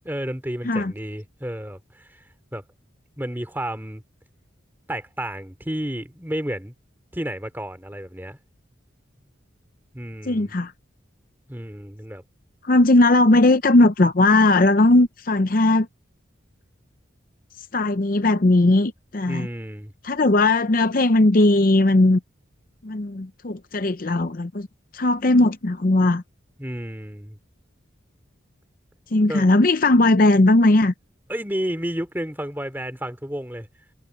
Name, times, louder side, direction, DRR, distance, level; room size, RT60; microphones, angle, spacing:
voice 1, 0.1-2.2 2.5-2.6 3.2-4.0 4.9-6.7 7.1-8.4 9.9-10.5 11.5-12.2 19.3-19.9 26.6-27.4 29.3-29.4 31.3-33.7, equal, 10° right, 2.8 m, -31 dB
voice 2, 10.3-10.7 12.6-15.9 17.7-19.5 20.0-22.2 22.8-24.7 24.9-26.2 29.1-30.9, left 2 dB, 45° left, 0.6 m, -18 dB
head